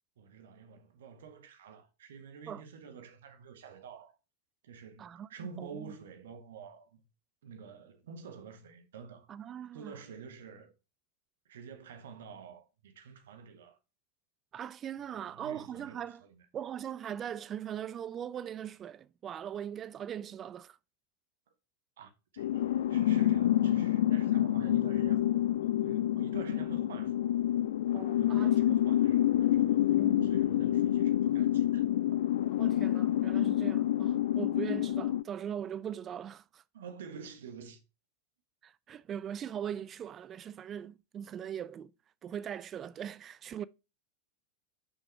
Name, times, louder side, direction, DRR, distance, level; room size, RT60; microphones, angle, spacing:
voice 1, 0.2-4.2 4.6-7.0 7.4-9.3 9.7-10.7 11.4-13.8 15.1-16.4 22.0-27.1 28.2-31.8 36.7-37.8, right 6 dB, 60° right, 1.4 m, -49 dB
voice 2, 5.0-5.9 9.3-9.9 14.5-16.2 16.5-20.8 27.9-28.8 29.9-30.4 30.9-31.0 32.5-36.6 38.6-41.9 42.2-43.7, right 9 dB, 25° right, 0.4 m, -40 dB
sound 1, 22.4-35.2, left 12 dB, 60° left, 0.4 m, -28 dB
9.8 x 5.9 x 3.3 m
figure-of-eight pair, 90°, 0 cm